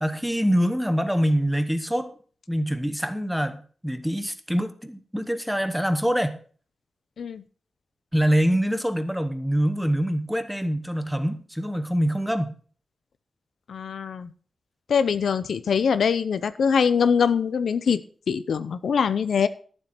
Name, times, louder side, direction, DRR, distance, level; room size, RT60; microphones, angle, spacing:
voice 1, 0.0-2.1 2.5-6.4 8.1-12.6, equal, ahead, 10 dB, 0.9 m, -25 dB
voice 2, 13.7-14.3 14.9-18.0 18.3-19.5, left 6 dB, 85° left, 14 dB, 0.6 m, -23 dB
12.5 x 7.5 x 4.4 m, 0.43 s
wide cardioid pair, 140°, 0 cm